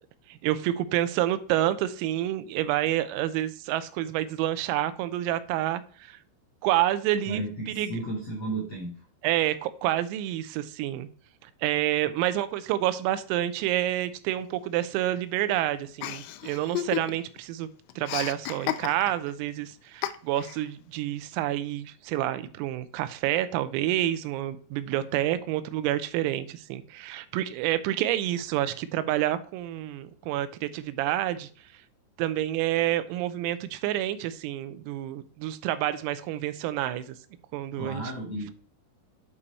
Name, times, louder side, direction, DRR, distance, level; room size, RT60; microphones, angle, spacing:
voice 1, 0.3-6.2 6.6-7.4 7.8-8.0 9.2-11.1 11.4-17.7 18.0-31.5 32.2-37.2 37.5-38.0, right 13 dB, 85° right, 13 dB, 3.4 m, -28 dB
voice 2, 7.2-9.0 12.0-12.1 37.8-38.5, right 2 dB, 65° left, -4 dB, 1.6 m, -34 dB
Chuckle chortle, 16.0-17.4 17.6-19.3 20.0-20.6, left 13 dB, 85° left, 2.7 m, -33 dB
8.3 x 5.5 x 4.1 m, 0.43 s
omnidirectional pair, 6.0 m